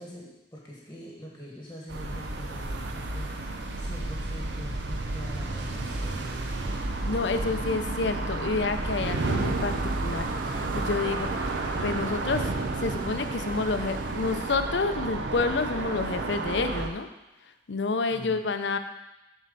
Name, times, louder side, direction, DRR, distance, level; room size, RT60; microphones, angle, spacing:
voice 1, 0.0-6.3 18.1-18.4, equal, 10° left, -3 dB, 1.4 m, -44 dB
sound 1, 1.9-16.9, right 2 dB, 70° right, 0.8 m, -31 dB
voice 2, 7.1-12.5 12.8-17.1 17.7-18.8, left 4 dB, 70° left, 8 dB, 0.6 m, -29 dB
sound 2, 9.4-14.6, right 5 dB, 50° right, 0.4 m, -40 dB
7.5 x 4.5 x 6.7 m, 0.99 s
head